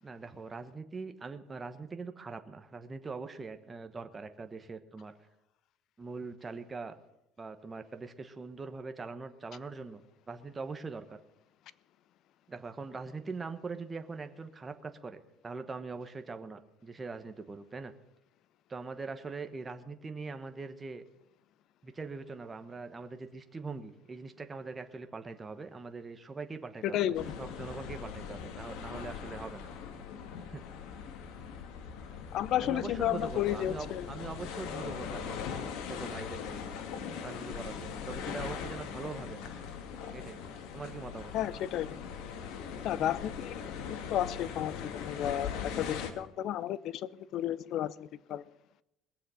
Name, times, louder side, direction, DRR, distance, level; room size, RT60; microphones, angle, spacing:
voice 1, 0.0-5.1 6.0-6.9 7.4-11.2 12.5-17.9 18.7-21.0 21.8-27.1 27.4-29.7 30.5-30.6 32.1-32.2 32.6-35.5 35.9-36.6 37.2-39.5 40.1-40.4 40.7-41.3, right 4 dB, 20° right, 1.1 m, -42 dB
voice 2, 26.8-27.3 32.3-34.1 41.3-42.0 42.8-43.6 43.9-48.4, left 12 dB, 55° left, 0.5 m, -32 dB
sound 1, 27.1-46.1, left 7 dB, 70° left, 1.8 m, -40 dB
21.0 x 7.4 x 5.6 m
cardioid pair, 145°, 0 cm